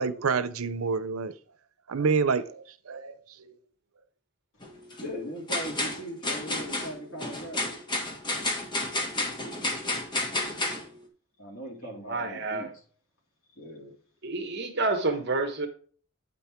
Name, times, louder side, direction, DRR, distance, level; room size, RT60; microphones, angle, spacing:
voice 1, 0.0-1.3 1.9-3.6, right 5 dB, 85° right, 0.7 m, -28 dB
sound 1, 4.6-5.1 5.5-10.8, left 2 dB, 20° left, 1.4 m, -31 dB
voice 2, 5.0-7.6 11.4-12.7 13.6-13.9, equal, 70° left, 3.0 m, -39 dB
voice 3, 11.8-12.7 14.2-15.7, right 3 dB, 50° right, 1.1 m, -29 dB
8.6 x 5.4 x 4.4 m
head